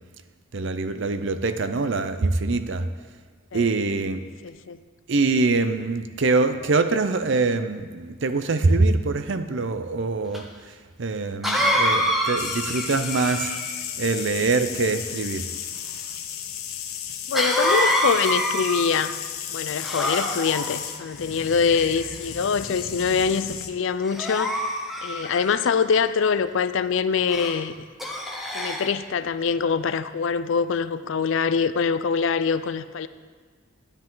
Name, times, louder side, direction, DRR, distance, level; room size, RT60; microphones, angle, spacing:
voice 1, 0.5-2.9 3.5-4.2 5.1-13.6 14.0-15.5, right 3 dB, 60° right, 10 dB, 0.6 m, -24 dB
voice 2, 4.4-4.8 17.3-19.1 19.5-24.6 25.0-27.8 28.5-33.1, left 6 dB, 65° left, 13 dB, 0.4 m, -24 dB
Cough, 10.3-10.4 11.4-13.8 17.3-19.1 19.8-20.7 21.5-22.2 22.8-23.1 24.1-25.7 27.3-27.6 28.0-28.9, equal, ahead, 0.9 m, -26 dB
sound 1, 12.4-23.7, left 9 dB, 85° left, 0.9 m, -34 dB
11.5 x 10.0 x 3.9 m, 1.5 s
head